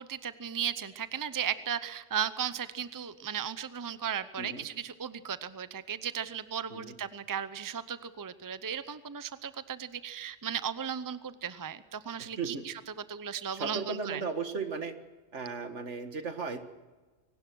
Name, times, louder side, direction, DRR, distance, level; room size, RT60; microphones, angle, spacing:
voice 1, 0.0-12.7 13.1-14.2, right 8 dB, 20° right, 13 dB, 0.6 m, -36 dB
voice 2, 12.2-12.6 13.5-14.9 15.3-16.6, right 5 dB, 75° right, 7 dB, 2.0 m, -36 dB
22.5 x 18.5 x 6.3 m, 1.3 s
omnidirectional pair, 1.2 m